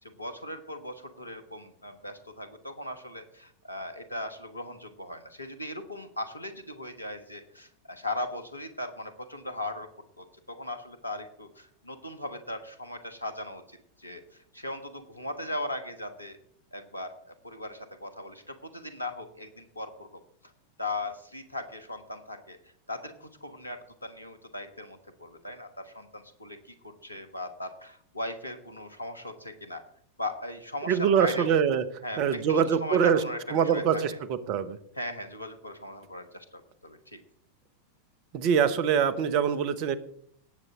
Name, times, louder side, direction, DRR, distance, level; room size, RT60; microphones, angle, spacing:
voice 1, 0.0-9.9 10.2-16.4 16.7-20.1 20.4-20.5 20.8-22.6 22.9-29.8 30.2-31.5 32.0-34.2 34.9-37.2, left 1 dB, 85° left, 8 dB, 1.4 m, -38 dB
voice 2, 30.9-31.8 32.2-33.2 33.5-34.1 34.5-34.8 38.3-40.0, right 7 dB, 45° right, 14 dB, 1.1 m, -24 dB
18.0 x 8.0 x 3.8 m, 0.65 s
figure-of-eight pair, 90°, 0 cm